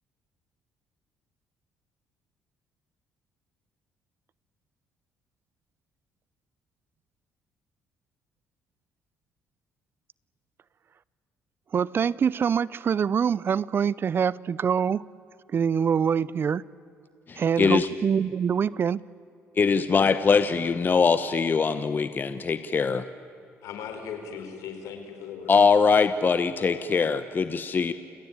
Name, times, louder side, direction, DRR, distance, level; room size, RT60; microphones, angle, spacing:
voice 1, 11.7-15.0 15.5-16.6 17.4-19.0, right 7 dB, 45° right, 0.6 m, -24 dB
voice 2, 17.3-17.9 19.6-23.0 25.5-27.9, left 5 dB, 40° left, 1.1 m, -22 dB
voice 3, 23.6-25.6 26.5-26.9, left 7 dB, 80° left, 4.4 m, -38 dB
29.5 x 17.5 x 8.9 m
supercardioid pair, 75°, 5 cm